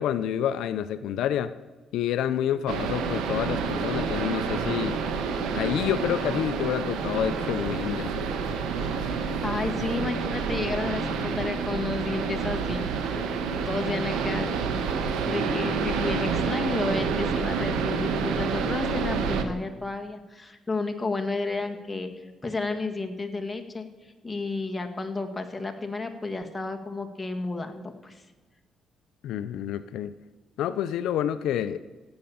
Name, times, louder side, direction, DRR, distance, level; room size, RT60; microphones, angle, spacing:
voice 1, 0.0-1.5 1.9-5.0 5.5-8.3 29.2-30.1 30.6-31.8, left 10 dB, 85° left, 12 dB, 0.5 m, -28 dB
sound 1, 2.7-19.4, right 5 dB, 90° right, 1.3 m, -28 dB
voice 2, 9.1-12.9 13.6-14.8 15.2-22.1 22.4-28.2, left 3 dB, 15° left, 4 dB, 1.8 m, -32 dB
15.5 x 8.8 x 7.1 m, 1.2 s
cardioid pair, 90°, 0 cm